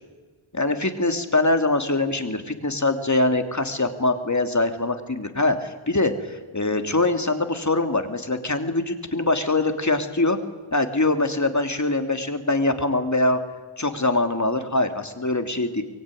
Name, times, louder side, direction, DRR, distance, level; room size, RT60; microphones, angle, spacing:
voice 1, 0.5-10.4 10.7-13.4 13.8-15.8, left 2 dB, 35° left, 7 dB, 2.9 m, -23 dB
24.0 x 22.5 x 10.0 m, 1.4 s
wide cardioid pair, 65°, 49 cm